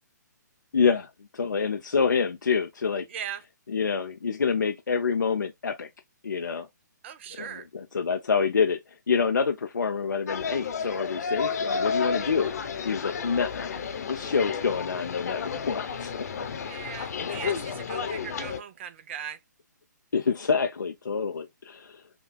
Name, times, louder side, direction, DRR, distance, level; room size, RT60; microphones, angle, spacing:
voice 1, 0.7-3.1 3.7-5.9 6.2-6.7 7.4-12.5 12.8-13.8 14.1-16.5 20.1-22.0, left 5 dB, 80° left, 0.5 m, -27 dB
voice 2, 3.1-3.4 7.0-7.7 16.7-19.4, right 8 dB, 40° right, 0.6 m, -39 dB
sound 1, 10.3-18.6, left 6 dB, 60° left, 0.9 m, -32 dB
5.9 x 2.3 x 2.2 m
figure-of-eight pair, 135°, 10 cm